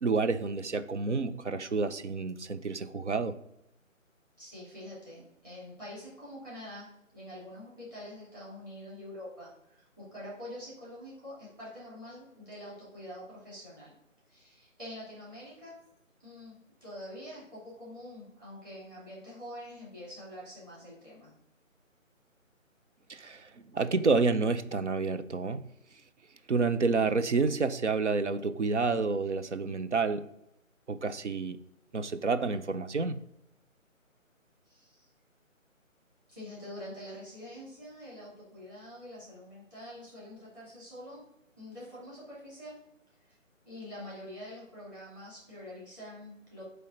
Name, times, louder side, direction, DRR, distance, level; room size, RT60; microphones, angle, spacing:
voice 1, 0.0-3.4 23.1-25.7 26.5-30.3 30.9-31.6 31.9-33.2, right 4 dB, 60° right, 0.5 m, -29 dB
voice 2, 4.4-6.9 7.1-13.9 14.3-15.7 16.2-21.3 34.6-35.1 36.3-41.2 41.6-42.8 43.2-43.4 43.7-46.6, left 1 dB, 15° right, 2.4 m, -46 dB
8.0 x 3.3 x 5.1 m
figure-of-eight pair, 155°, 41 cm